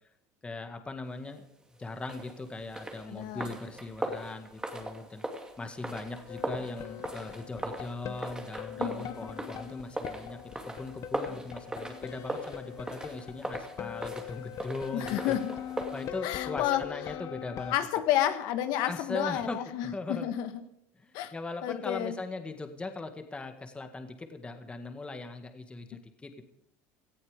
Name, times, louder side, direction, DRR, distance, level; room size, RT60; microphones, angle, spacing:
voice 1, 0.4-1.5 1.8-5.2 5.6-10.4 10.6-15.4 15.9-17.7 18.8-20.3 21.0-26.4, left 3 dB, 15° left, 6 dB, 1.9 m, -39 dB
sound 1, 2.0-16.1, right 1 dB, 10° right, 2.4 m, -39 dB
voice 2, 3.1-3.5 8.8-9.2 14.9-15.5 16.2-16.8 17.7-20.5 21.1-21.3 21.6-22.1, left 11 dB, 70° left, 9 dB, 1.4 m, -30 dB
Experimental guitar, 6.3-17.8, left 11 dB, 45° left, 1.2 m, -42 dB
17.5 x 14.0 x 5.1 m, 0.77 s
supercardioid pair, 120°, 7 cm